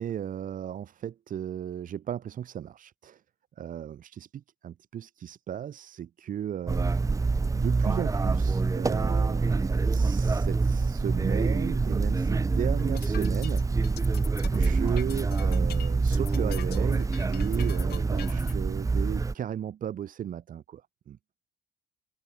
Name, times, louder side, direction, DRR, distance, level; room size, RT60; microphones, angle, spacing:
voice 1, 0.0-3.2 3.6-6.9 7.5-13.6 14.5-21.2, right 10 dB, 50° right, 3.0 m, -35 dB
sound 1, 6.7-19.3, right 4 dB, 20° right, 1.5 m, -26 dB
sound 2, 12.8-18.5, left 13 dB, 70° left, 3.8 m, -44 dB
cardioid pair, 110°, 17 cm